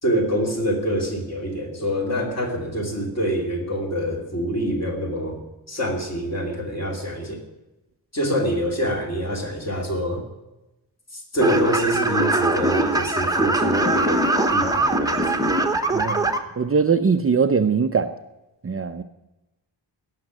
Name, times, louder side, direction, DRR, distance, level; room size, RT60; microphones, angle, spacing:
voice 1, 0.0-5.4 5.7-7.4 8.1-10.2 11.3-14.2 14.5-15.5, equal, 35° left, 1 dB, 3.0 m, -26 dB
sound 1, 11.4-16.4, right 2 dB, 10° right, 1.1 m, -21 dB
voice 2, 15.9-16.3 16.6-18.1 18.6-19.0, right 5 dB, 30° right, 7 dB, 0.6 m, -21 dB
17.0 x 6.6 x 9.9 m, 0.98 s
wide cardioid pair, 175°, 44 cm